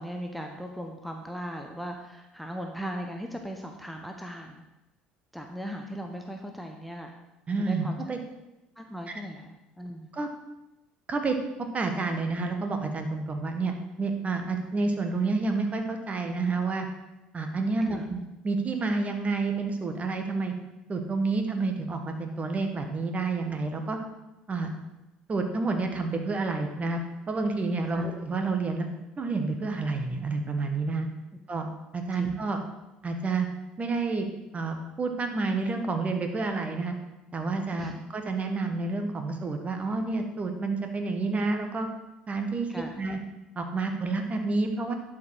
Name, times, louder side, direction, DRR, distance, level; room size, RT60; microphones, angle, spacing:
voice 1, 0.0-4.7 5.3-7.2 7.6-8.0 8.8-10.1 17.8-18.1 27.9-28.1 32.1-32.3 37.7-37.9 42.7-42.9, equal, ahead, 3 dB, 1.0 m, -38 dB
voice 2, 7.5-8.2 10.1-10.3 11.1-16.9 17.3-18.2 18.4-20.5 20.9-24.0 24.5-24.7 25.3-27.0 27.3-28.9 29.2-31.1 31.5-31.7 31.9-32.6 33.0-33.5 33.8-34.3 34.5-36.9 37.3-41.9 42.3-43.2 43.5-44.9, right 3 dB, 30° right, 5 dB, 1.5 m, -29 dB
11.5 x 5.1 x 4.8 m, 0.97 s
hypercardioid pair, 60°, 4 cm